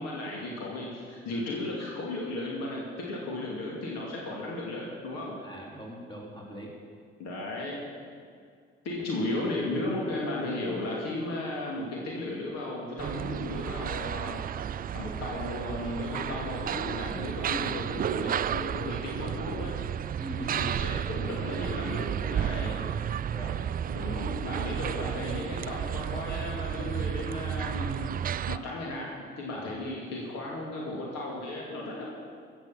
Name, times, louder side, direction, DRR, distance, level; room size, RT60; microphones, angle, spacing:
voice 1, 0.0-5.4 7.2-7.9 8.8-14.4 14.9-19.7 20.4-22.8 23.9-28.1 28.5-32.1, left 2 dB, 60° left, -3 dB, 2.6 m, -35 dB
voice 2, 5.4-6.7 17.5-17.7 20.2-20.5 22.6-22.9 23.3-23.7 29.5-29.7, equal, 15° left, -2 dB, 3.8 m, -42 dB
sound 1, 13.0-28.6, right 9 dB, 30° right, 0.4 m, -32 dB
15.0 x 6.9 x 7.4 m, 2.2 s
hypercardioid pair, 50°, 29 cm